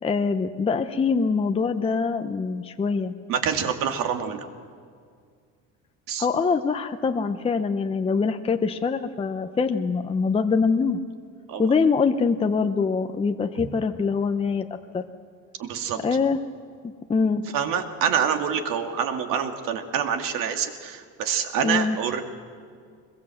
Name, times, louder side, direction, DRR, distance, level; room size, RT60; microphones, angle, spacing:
voice 1, 0.0-3.1 6.2-11.0 11.6-14.6 14.9-15.1 16.0-16.4 17.1-17.4 21.6-22.0, left 5 dB, 15° left, 6 dB, 0.7 m, -24 dB
voice 2, 3.3-4.5 6.1-6.3 11.5-11.7 13.6-13.7 15.6-16.0 17.5-22.2, right 8 dB, 65° right, 5 dB, 2.3 m, -26 dB
23.0 x 21.5 x 7.8 m, 2.1 s
cardioid pair, 135°, 35 cm